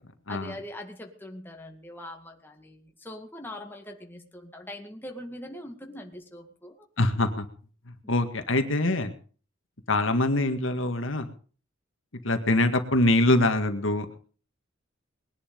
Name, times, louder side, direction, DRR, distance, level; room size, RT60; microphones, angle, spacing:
voice 1, 0.3-6.7 7.1-7.2 8.0-8.1, left 1 dB, 10° left, 3 dB, 2.1 m, -42 dB
voice 2, 7.0-7.5 8.1-9.1 9.9-11.3 12.2-14.2, left 2 dB, 75° left, 7 dB, 2.0 m, -24 dB
21.0 x 10.5 x 5.4 m, 0.41 s
head